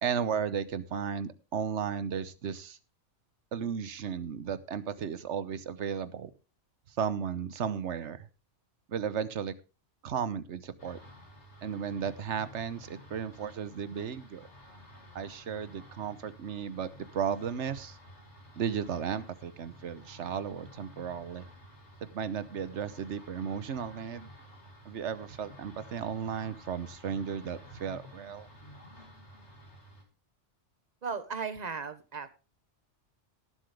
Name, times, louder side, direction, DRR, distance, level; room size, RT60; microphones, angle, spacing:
voice 1, 0.0-2.8 3.5-6.3 6.9-8.3 8.9-9.5 10.0-11.0 11.6-14.5 15.1-18.0 18.6-21.4 22.1-24.3 24.8-28.5, right 7 dB, 75° right, 15 dB, 1.2 m, -34 dB
sound 1, 10.8-30.0, equal, 70° left, 2.6 m, -52 dB
voice 2, 31.0-32.3, right 5 dB, 35° right, 11 dB, 1.2 m, -36 dB
18.5 x 7.7 x 3.3 m, 0.31 s
omnidirectional pair, 1.2 m